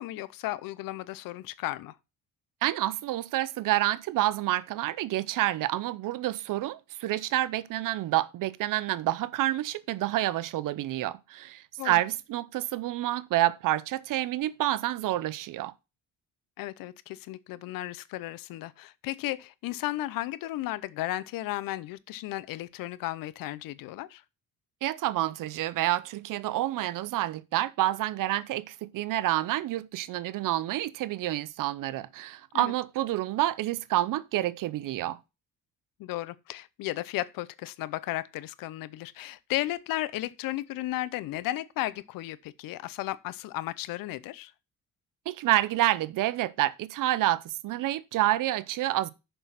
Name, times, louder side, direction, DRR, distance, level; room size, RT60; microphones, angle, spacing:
voice 1, 0.0-2.0 11.8-12.0 16.6-24.2 32.5-32.7 36.0-44.5, left 16 dB, 85° left, 0.7 m, -34 dB
voice 2, 2.6-15.7 24.8-35.2 45.3-49.1, right 15 dB, 70° right, 0.7 m, -28 dB
6.8 x 6.1 x 5.8 m
cardioid pair, 110°, 33 cm